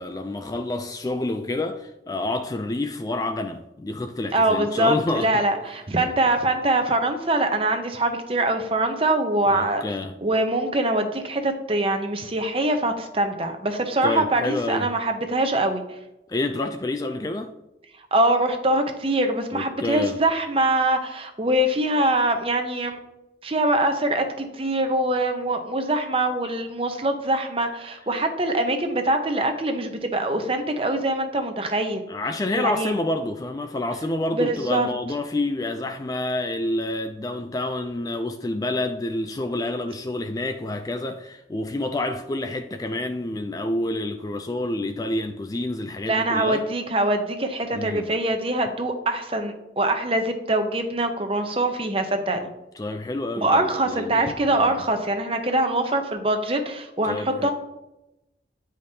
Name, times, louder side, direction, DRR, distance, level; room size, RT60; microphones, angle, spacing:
voice 1, 0.0-5.4 9.5-10.2 14.0-14.9 16.3-17.5 19.5-20.2 32.1-46.6 47.7-48.1 52.8-54.3 54.7-54.8 57.0-57.5, left 2 dB, 20° left, 0.3 m, -28 dB
voice 2, 4.3-9.8 10.2-15.8 18.1-23.0 23.4-32.1 32.5-33.0 34.3-34.9 46.0-52.5 53.4-57.5, right 1 dB, 30° right, 0.7 m, -23 dB
9.2 x 5.1 x 2.8 m
head